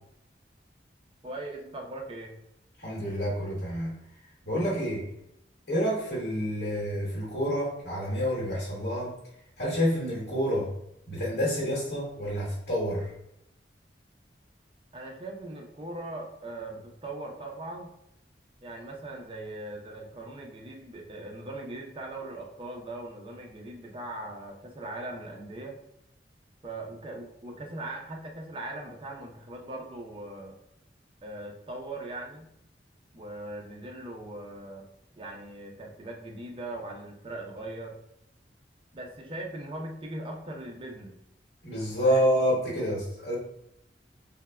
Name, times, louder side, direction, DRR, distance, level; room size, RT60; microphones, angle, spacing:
voice 1, 1.2-2.3 14.9-17.9 18.6-25.8 26.6-30.6 31.2-32.5 33.1-34.9 35.2-38.0 38.9-41.1 41.9-42.2, right 2 dB, 30° right, 1 dB, 0.4 m, -40 dB
voice 2, 2.8-4.0 4.4-5.1 5.7-9.1 9.6-10.7 11.1-13.1 41.6-43.4, equal, 70° left, -7 dB, 1.0 m, -28 dB
3.3 x 2.0 x 2.2 m, 0.79 s
head